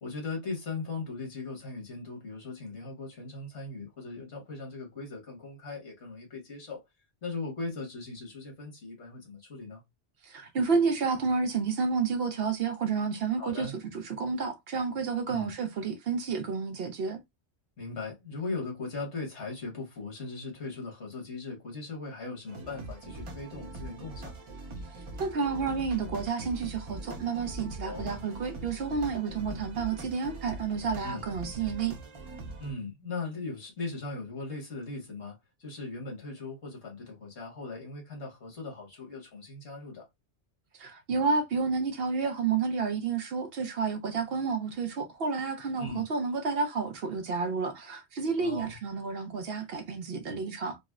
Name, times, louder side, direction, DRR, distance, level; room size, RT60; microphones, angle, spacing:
voice 1, 0.0-6.8 7.2-9.8 13.4-13.7 15.3-15.5 17.8-24.3 27.8-28.2 31.0-31.2 32.6-40.1 45.8-46.0 48.4-48.7, left 3 dB, 70° left, 1.6 m, -39 dB
voice 2, 10.2-17.2 25.2-32.0 40.7-50.8, right 5 dB, 65° right, 0.8 m, -30 dB
sound 1, 22.5-32.7, right 2 dB, 35° right, 0.6 m, -42 dB
4.1 x 2.0 x 2.3 m
omnidirectional pair, 1.2 m